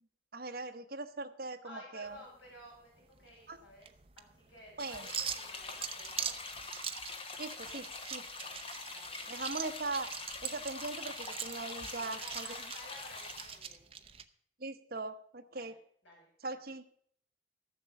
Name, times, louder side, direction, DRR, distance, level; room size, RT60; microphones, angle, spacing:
voice 1, 0.3-2.2 3.5-3.6 4.8-5.1 7.4-8.3 9.3-10.1 10.4-12.5 14.6-15.7 16.4-16.8, right 3 dB, 50° right, 6 dB, 1.0 m, -40 dB
voice 2, 1.6-3.9 4.2-6.5 8.3-8.6 8.9-9.6 11.9-13.8 15.5-15.8 16.0-16.3, left 1 dB, 75° left, -1 dB, 5.5 m, -54 dB
sound 1, 2.1-14.2, right 8 dB, 30° right, 0.7 m, -43 dB
sound 2, 4.8-13.6, left 3 dB, 30° left, 1.2 m, -44 dB
13.5 x 7.5 x 6.9 m, 0.67 s
head